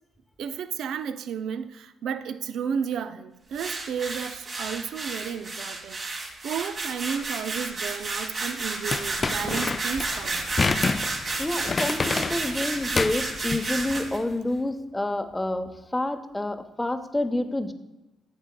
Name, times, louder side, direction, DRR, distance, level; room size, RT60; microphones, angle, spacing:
voice 1, 0.4-6.0 6.4-10.5, right 7 dB, 70° right, 12 dB, 0.4 m, -32 dB
sound 1, 3.5-14.2, right 3 dB, 50° right, 1.7 m, -31 dB
sound 2, 8.9-13.9, left 4 dB, 35° left, 0.4 m, -28 dB
voice 2, 11.4-17.7, left 1 dB, 15° left, 8 dB, 0.7 m, -28 dB
10.5 x 8.0 x 2.2 m, 0.97 s
hypercardioid pair, 45°, 0 cm